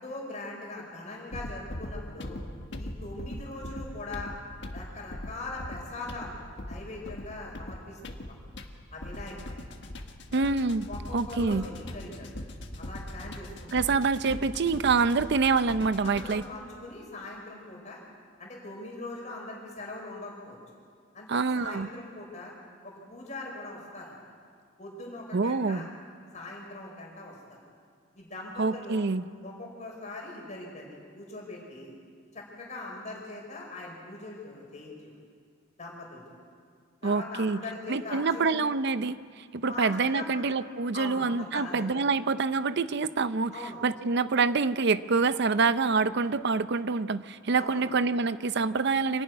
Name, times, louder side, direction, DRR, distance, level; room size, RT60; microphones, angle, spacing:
voice 1, 0.0-2.4 2.8-4.3 4.7-6.3 6.6-8.2 8.9-9.5 10.3-10.5 10.9-12.3 12.8-13.7 16.0-18.0 18.4-20.6 21.1-22.5 22.8-24.3 24.8-25.9 26.3-27.6 28.1-29.1 29.4-31.9 32.3-35.2 35.8-36.4 37.0-38.5 39.6-40.4 40.9-41.9 43.5-43.8 47.6-47.9, left 2 dB, 40° left, -2 dB, 5.1 m, -41 dB
sound 1, 1.3-16.6, left 1 dB, 65° left, 1.5 m, -41 dB
voice 2, 10.3-10.9 11.1-11.7 13.7-16.4 21.3-21.9 25.3-25.9 28.6-29.2 37.0-37.6 37.9-43.5 43.8-49.2, right 4 dB, 60° right, 14 dB, 0.6 m, -26 dB
26.0 x 12.0 x 9.6 m, 2.1 s
head